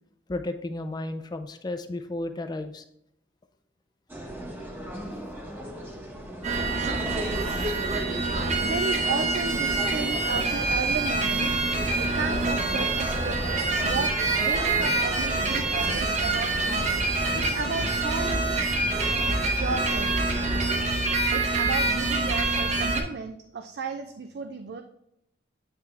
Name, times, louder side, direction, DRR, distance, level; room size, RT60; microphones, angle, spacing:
voice 1, 0.3-2.8, left 2 dB, 20° left, 8 dB, 0.4 m, -33 dB
sound 1, 4.1-21.0, right 1 dB, 10° right, 0.9 m, -38 dB
sound 2, 6.4-23.0, right 3 dB, 40° right, 0.8 m, -26 dB
voice 2, 8.6-11.6 12.0-13.4 13.8-16.9 17.3-18.6 19.6-20.2 21.3-24.8, right 4 dB, 60° right, 7 dB, 0.4 m, -33 dB
8.8 x 3.5 x 3.3 m, 0.78 s
head